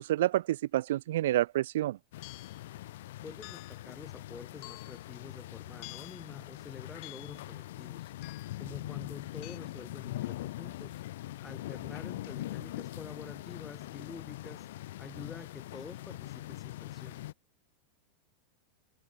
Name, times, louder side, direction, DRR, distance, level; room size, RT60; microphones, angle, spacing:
voice 1, 0.0-2.0, right 14 dB, 75° right, 0.5 m, -28 dB
sound 1, 2.1-17.3, left 15 dB, 75° left, 0.7 m, -42 dB
sound 2, 2.2-2.6 3.4-3.9 4.6-5.1 5.8-6.3 7.0-7.5 8.2-8.6 9.4-9.6, left 33 dB, 50° left, 1.7 m, -49 dB
voice 2, 3.2-11.0 11.4-17.2, left 4 dB, 15° left, 2.5 m, -48 dB
supercardioid pair, 130°, 0 cm